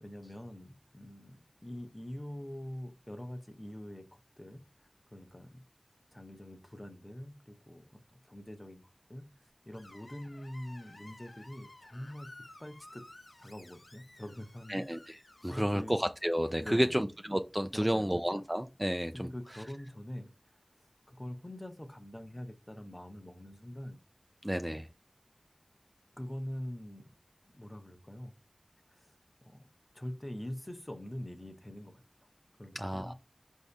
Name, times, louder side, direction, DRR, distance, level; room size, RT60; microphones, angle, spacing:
voice 1, 0.0-5.6 6.1-8.8 9.1-9.2 9.7-12.3 12.6-13.0 13.4-14.8 15.5-16.0 16.6-17.1 17.7-18.2 19.1-20.6 21.1-24.0 24.7-24.9 26.2-27.1 27.4-28.3 28.9-29.1 29.4-29.7 29.9-32.0 32.6-33.1, left 1 dB, 25° left, 0.7 m, -44 dB
Screech, 9.7-15.8, left 2 dB, 65° left, 0.7 m, -55 dB
voice 2, 14.7-19.3 24.4-24.9 32.7-33.1, equal, 10° right, 0.3 m, -31 dB
4.7 x 2.7 x 3.3 m
wide cardioid pair, 50°, 0 cm